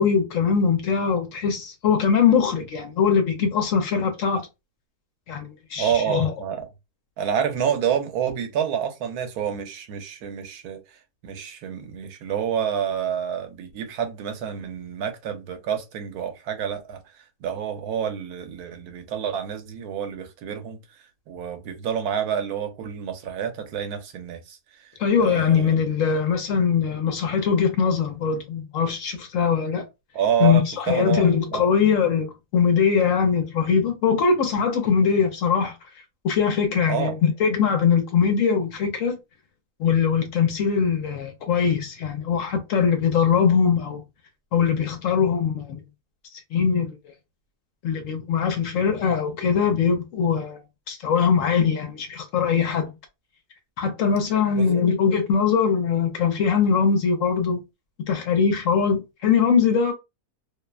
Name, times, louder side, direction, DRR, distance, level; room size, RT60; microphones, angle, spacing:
voice 1, 0.0-4.5 5.3-6.3 25.0-29.9 30.4-35.8 36.2-39.2 39.8-44.0 44.5-45.8 46.5-46.9 47.8-50.6 50.9-52.9 53.8-57.6 58.1-59.9, left 6 dB, 70° left, 0.9 m, -21 dB
voice 2, 5.8-6.7 7.2-10.8 11.2-20.8 21.3-24.9 25.2-25.8 30.1-31.7 36.9-37.2 54.5-54.8, right 8 dB, 80° right, 1.1 m, -28 dB
2.7 x 2.1 x 2.3 m
omnidirectional pair, 1.6 m